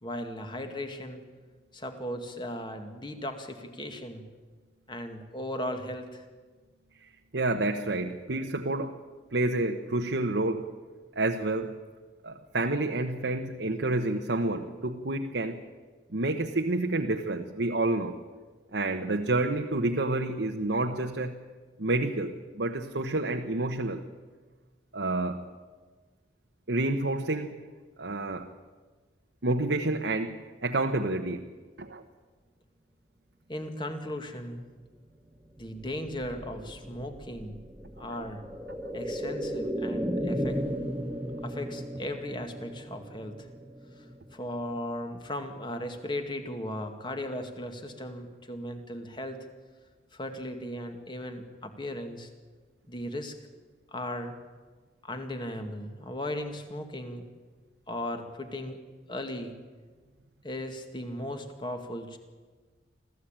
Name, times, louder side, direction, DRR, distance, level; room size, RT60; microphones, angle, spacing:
voice 1, 0.0-1.2 1.7-4.2 4.9-6.2 33.5-34.6 35.6-37.6 38.0-38.5 38.9-40.6 41.4-43.5 44.0-44.1 44.3-49.4 50.1-52.3 52.9-53.4 53.9-54.4 55.0-57.2 57.9-58.8 59.1-59.5 60.4-62.2, left 1 dB, 25° left, 6 dB, 2.0 m, -37 dB
voice 2, 7.3-9.0 9.3-10.7 11.2-11.7 12.2-15.6 16.1-18.2 18.7-21.4 21.8-24.0 24.9-25.5 26.7-27.6 28.0-28.5 29.4-31.5 31.8-32.0 38.1-38.2 38.8-39.0, right 2 dB, 75° right, 3 dB, 1.1 m, -29 dB
sound 1, 35.5-45.3 45.6-45.7, equal, 10° right, 1.6 m, -36 dB
25.5 x 15.0 x 8.9 m, 1.4 s
head